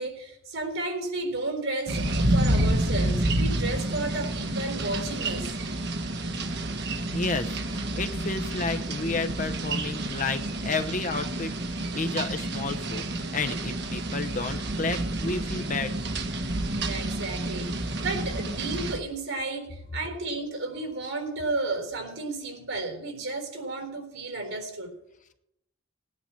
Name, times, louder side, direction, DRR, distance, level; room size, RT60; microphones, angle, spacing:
voice 1, 0.0-5.5 16.8-24.9, right 2 dB, 80° right, 4.0 m, -33 dB
sound 1, 1.9-19.0, right 1 dB, 55° right, 1.3 m, -29 dB
voice 2, 7.1-15.9, left 3 dB, 40° left, 0.9 m, -31 dB
19.0 x 9.8 x 4.5 m
head